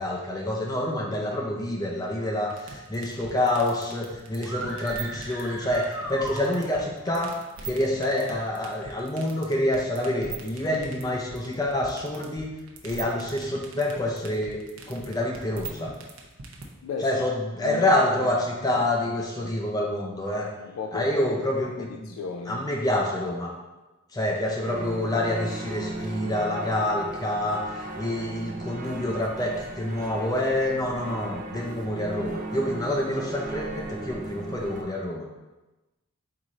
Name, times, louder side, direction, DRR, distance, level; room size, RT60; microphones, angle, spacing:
voice 1, 0.0-7.3 7.6-12.6 12.8-14.6 14.9-15.9 17.0-20.5 20.9-22.1 22.5-23.5 24.1-35.2, left 1 dB, 20° left, -1 dB, 0.5 m, -27 dB
sound 1, 2.5-16.6, right 5 dB, 80° right, 0.7 m, -41 dB
sound 2, 4.4-7.0, right 2 dB, 15° right, 0.9 m, -37 dB
voice 2, 16.8-17.2 17.6-17.9 18.2-18.8 19.4-19.6 20.6-21.2 21.7-22.7 23.2-23.3, left 5 dB, 80° left, 2 dB, 0.3 m, -36 dB
sound 3, 24.6-34.8, right 2 dB, 40° right, 0.4 m, -37 dB
4.6 x 2.5 x 4.1 m, 1.1 s
head